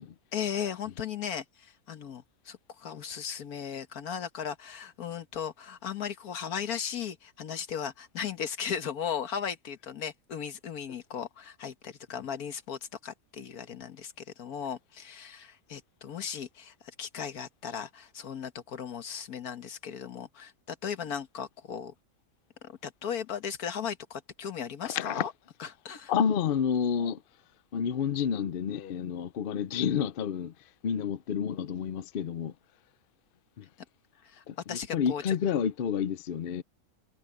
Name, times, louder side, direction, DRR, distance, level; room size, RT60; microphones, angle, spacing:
voice 1, 0.3-21.9 22.6-25.3 25.6-26.1 34.2-35.4, left 8 dB, 85° left, 1.8 m, -37 dB
voice 2, 24.8-25.2 26.1-27.2 27.7-30.5 30.8-32.5 33.6-33.7 34.5-36.6, left 7 dB, 55° left, 0.7 m, -29 dB
omnidirectional pair, 1.5 m